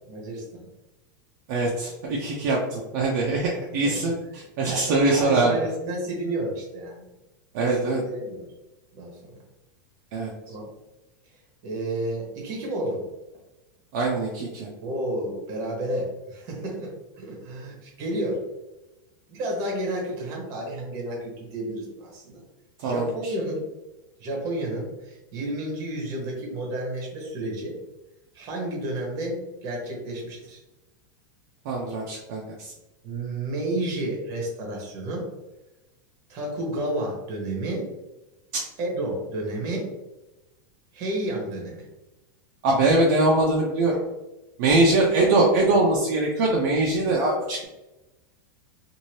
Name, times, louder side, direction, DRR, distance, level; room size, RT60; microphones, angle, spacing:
voice 1, 0.1-0.7 3.8-4.3 4.7-7.0 7.6-8.5 8.9-9.2 10.5-10.7 11.6-13.0 14.8-18.4 19.3-22.4 22.8-23.7 24.2-27.8 28.3-30.6 33.0-35.3 36.3-37.9 38.8-39.9 40.9-41.9, right 1 dB, 35° right, -1 dB, 1.1 m, -31 dB
voice 2, 1.5-5.6 7.5-8.0 10.1-10.3 13.9-14.7 22.8-23.1 31.6-32.7 38.5-38.6 42.6-44.0 44.6-47.6, right 2 dB, 50° right, -2 dB, 0.5 m, -22 dB
2.7 x 2.6 x 3.1 m, 1.0 s
supercardioid pair, 160°, 11 cm